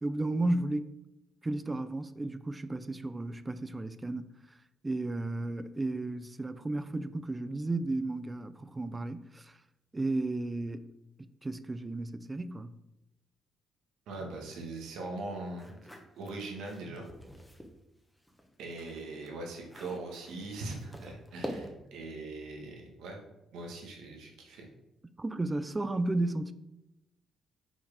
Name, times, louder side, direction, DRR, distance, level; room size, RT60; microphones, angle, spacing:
voice 1, 0.0-0.9 1.4-4.3 4.8-9.6 9.9-10.9 11.2-12.8 25.2-26.5, right 2 dB, 20° right, 0.4 m, -33 dB
voice 2, 14.1-15.9 16.1-17.1 18.6-23.2 23.5-24.7, right 2 dB, 85° right, 1.5 m, -41 dB
sound 1, 15.5-17.8 18.2-22.0, equal, 5° left, 1.0 m, -46 dB
6.0 x 4.3 x 4.9 m
cardioid pair, 90°, 0 cm